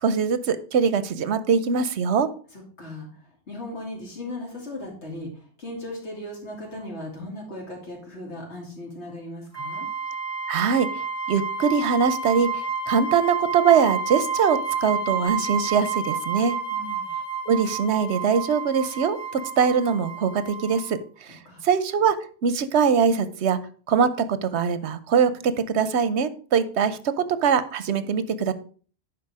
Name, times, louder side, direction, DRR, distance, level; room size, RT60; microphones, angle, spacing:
voice 1, 0.0-2.3 10.5-11.0 11.3-12.5 12.9-16.6 17.5-22.2 22.4-23.6 23.9-27.0 27.4-28.5, right 6 dB, 85° right, 13 dB, 1.0 m, -22 dB
voice 2, 2.5-9.9 16.7-17.1 21.4-21.6, left 1 dB, 85° left, -1 dB, 2.9 m, -37 dB
sound 1, 9.5-21.0, right 5 dB, 15° right, 1.6 m, -30 dB
11.0 x 4.5 x 4.8 m, 0.43 s
omnidirectional pair, 1.1 m